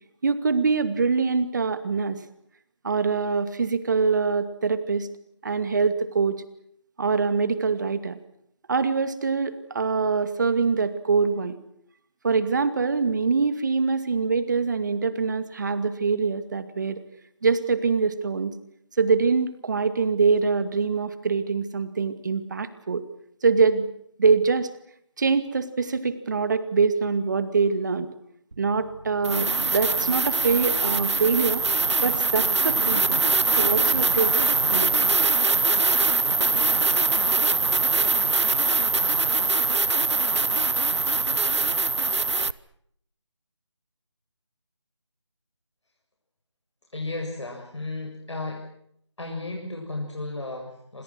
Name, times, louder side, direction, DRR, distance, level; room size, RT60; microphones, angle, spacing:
voice 1, 0.2-2.2 2.8-5.1 5.4-6.4 7.0-8.2 8.7-11.6 12.2-17.0 17.4-18.5 19.0-23.0 23.4-23.9 24.2-24.7 25.2-28.1 28.6-31.6 32.0-33.2 33.6-34.3 34.7-34.9, right 5 dB, 40° right, 12 dB, 2.3 m, -24 dB
sound 1, 28.5-28.6 29.2-42.5, right 3 dB, 70° right, 1.1 m, -22 dB
voice 2, 46.9-48.6 49.2-51.0, left 2 dB, 75° left, 0 dB, 7.5 m, -34 dB
28.5 x 27.0 x 6.3 m, 0.70 s
figure-of-eight pair, 165°, 15 cm